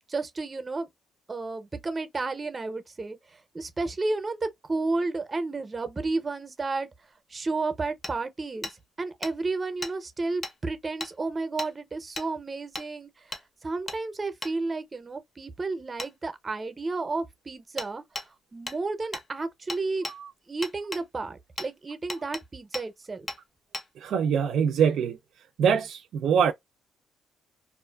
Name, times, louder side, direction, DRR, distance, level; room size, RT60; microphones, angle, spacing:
voice 1, 0.1-0.9 1.3-6.9 7.3-13.1 13.6-18.0 18.5-20.1 20.5-23.3, right 3 dB, 30° right, 0.6 m, -32 dB
Hammer, 8.0-8.1 8.6-8.8 9.2-9.3 9.8-9.9 10.4-10.6 11.0-11.1 11.6-11.7 12.2-12.3 12.8-12.9 13.3-13.4 13.9-14.0 14.4-14.5 16.0-16.1 17.8-17.9 18.2-18.3 18.7-18.8 19.1-19.3 19.7-20.2 20.6-21.0 21.6-21.7 22.1-22.4 22.7-22.9 23.3-23.4 23.7-23.9, left 2 dB, 30° left, 0.6 m, -35 dB
voice 2, 24.0-25.2 25.6-26.5, right 7 dB, 75° right, 0.3 m, -23 dB
2.4 x 2.3 x 2.2 m
cardioid pair, 90°, 0 cm